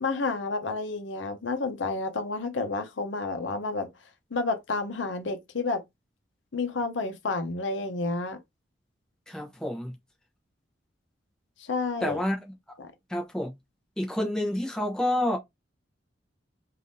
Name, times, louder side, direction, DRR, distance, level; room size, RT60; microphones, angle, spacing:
voice 1, 0.0-3.9 4.3-5.8 6.5-8.4 11.6-12.2 12.8-12.9, left 3 dB, 80° left, 0.7 m, -30 dB
voice 2, 9.3-9.9 12.0-12.4 13.1-13.5 14.0-15.4, left 1 dB, 5° left, 0.8 m, -28 dB
3.5 x 2.6 x 2.6 m
head